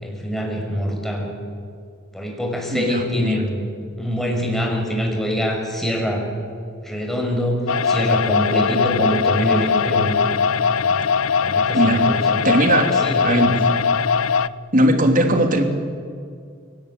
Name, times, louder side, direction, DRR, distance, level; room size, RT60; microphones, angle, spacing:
voice 1, 0.0-1.3 2.1-3.6 4.0-6.3 6.8-10.2 10.7-11.1 11.4-12.4 12.8-13.7, equal, ahead, 0 dB, 6.0 m, -24 dB
voice 2, 2.7-3.5 11.7-12.1 12.4-13.6 14.7-15.6, right 1 dB, 40° right, 5 dB, 3.0 m, -19 dB
sound 1, 7.7-14.5, left 6 dB, 75° left, 0.6 m, -20 dB
29.5 x 19.0 x 9.4 m, 2.2 s
head